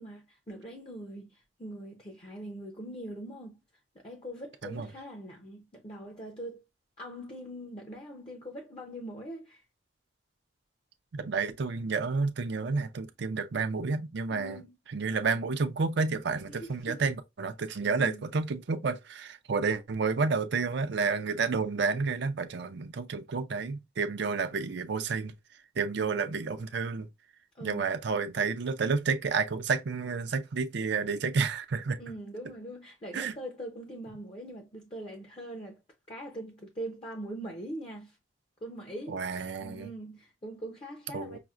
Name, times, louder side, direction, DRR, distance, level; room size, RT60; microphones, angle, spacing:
voice 1, 0.0-3.6 3.9-6.6 7.0-9.6 14.3-14.7 16.5-17.0 17.8-18.3 26.0-26.4 27.5-27.8 32.0-35.8 36.1-38.2 38.6-39.2 39.6-41.4, right 1 dB, 30° left, 0.7 m, -42 dB
voice 2, 11.1-14.6 14.9-25.3 25.8-27.1 27.6-32.0 33.1-33.3 39.1-39.9 41.1-41.4, right 4 dB, 65° right, 0.5 m, -30 dB
5.8 x 2.1 x 2.4 m
head